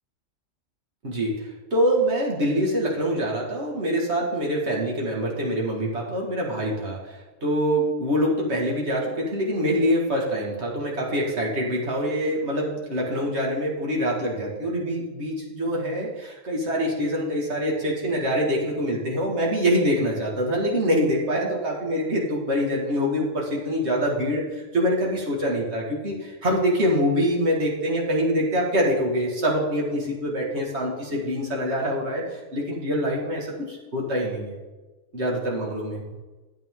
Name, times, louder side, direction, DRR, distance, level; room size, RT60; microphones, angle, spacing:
voice 1, 1.0-34.6 35.1-36.1, equal, 55° right, -3 dB, 2.3 m, -25 dB
11.5 x 8.6 x 3.7 m, 1.2 s
omnidirectional pair, 1.3 m